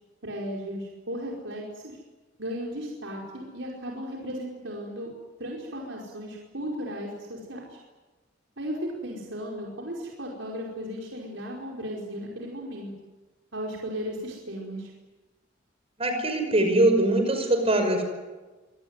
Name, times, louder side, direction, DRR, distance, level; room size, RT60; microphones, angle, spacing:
voice 1, 0.2-2.0 2.4-5.1 5.4-7.8 8.6-12.9 13.5-14.9, equal, 75° right, -2 dB, 5.0 m, -35 dB
voice 2, 16.0-18.0, right 1 dB, 30° right, 5 dB, 5.6 m, -22 dB
26.0 x 19.0 x 9.7 m, 1.2 s
head